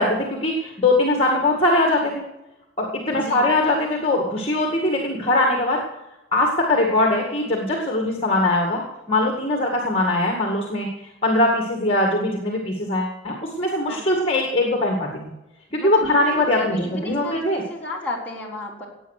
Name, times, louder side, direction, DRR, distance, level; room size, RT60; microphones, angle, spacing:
voice 1, 0.0-2.2 2.8-5.8 6.3-8.8 9.1-10.9 11.2-15.1 15.7-17.6, left 2 dB, 30° left, 1 dB, 2.0 m, -21 dB
voice 2, 3.1-3.5 13.9-14.1 15.8-18.9, left 2 dB, 10° left, -5 dB, 3.9 m, -34 dB
16.5 x 9.0 x 6.6 m, 0.98 s
head